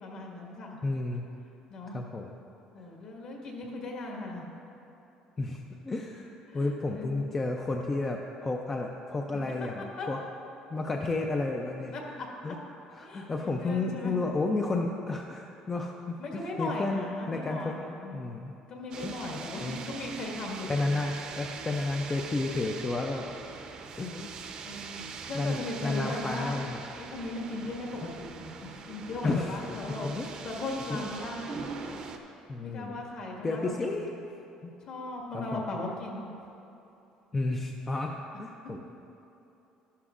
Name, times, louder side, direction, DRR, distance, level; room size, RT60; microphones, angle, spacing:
voice 1, 0.0-0.8 1.7-2.0 2.7-4.5 6.5-7.1 9.3-9.4 10.0-10.1 11.9-12.6 13.0-14.2 16.2-18.2 18.7-20.8 24.6-26.6 27.0-27.9 28.2-30.1 30.4-31.7 32.6-34.2 34.8-36.3, left 2 dB, 45° left, -1 dB, 1.7 m, -38 dB
voice 2, 0.8-1.3 1.9-2.3 5.4-6.3 6.5-10.2 10.7-11.9 12.4-12.6 12.9-17.8 18.1-18.5 19.0-19.8 20.7-23.3 24.0-24.4 25.3-26.8 29.2-30.4 30.9-31.1 32.5-33.0 33.4-34.1 34.6-34.7 35.3-35.6 37.3-38.8, left 3 dB, 15° left, 1 dB, 0.4 m, -32 dB
sound 1, 18.9-32.2, right 5 dB, 40° right, 0.6 m, -42 dB
13.5 x 11.0 x 2.5 m, 2.9 s
cardioid pair, 170°, 2 cm